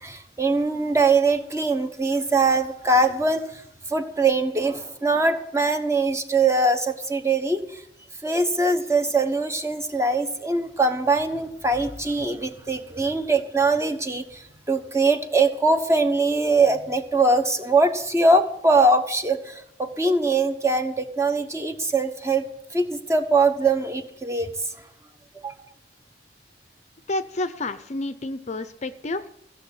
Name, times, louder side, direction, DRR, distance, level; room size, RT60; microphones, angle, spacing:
voice 1, 0.0-3.6 3.9-7.8 8.2-22.4 22.7-24.5 25.4-25.6, right 3 dB, 15° right, 7 dB, 1.1 m, -22 dB
voice 2, 27.1-29.3, left 2 dB, 40° left, 12 dB, 0.6 m, -30 dB
15.5 x 6.9 x 8.5 m, 0.77 s
head